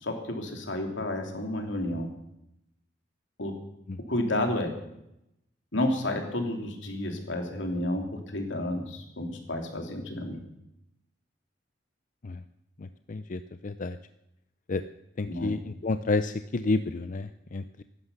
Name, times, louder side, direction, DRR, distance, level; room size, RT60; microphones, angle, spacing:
voice 1, 0.0-2.1 3.4-3.5 4.1-4.7 5.7-10.4 15.3-15.5, left 1 dB, 75° left, 3 dB, 3.0 m, -31 dB
voice 2, 12.8-14.0 14.7-14.8 15.2-17.8, left 3 dB, 45° left, 11 dB, 0.5 m, -30 dB
15.5 x 11.5 x 6.8 m, 0.84 s
head